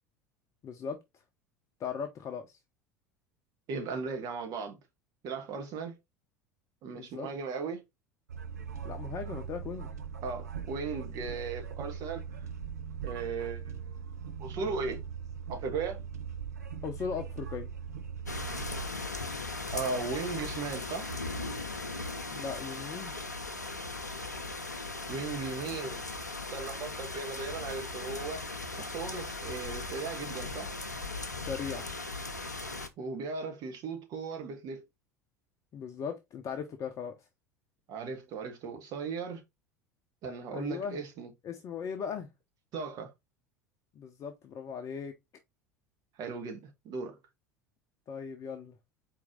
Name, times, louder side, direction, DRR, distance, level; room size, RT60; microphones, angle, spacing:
voice 1, 0.6-1.0 1.8-2.5 6.9-7.3 8.8-9.9 16.8-17.7 22.3-23.1 31.3-31.9 35.7-37.1 40.5-41.0 41.4-42.3 44.0-45.1 48.1-48.8, left 6 dB, 35° left, 0.7 m, -38 dB
voice 2, 3.7-4.8 5.2-6.0 6.8-7.8 10.2-12.3 13.0-14.0 14.4-15.0 15.5-16.0 19.7-21.2 25.1-26.0 26.5-28.5 28.8-30.7 33.0-34.8 37.9-39.4 40.2-41.3 42.7-43.1 46.2-47.2, right 4 dB, 45° right, 1.4 m, -37 dB
sound 1, 8.3-18.9, right 7 dB, 75° right, 0.6 m, -40 dB
sound 2, 18.3-32.9, left 3 dB, 90° left, 0.6 m, -38 dB
4.5 x 3.1 x 3.7 m
figure-of-eight pair, 70°, 9 cm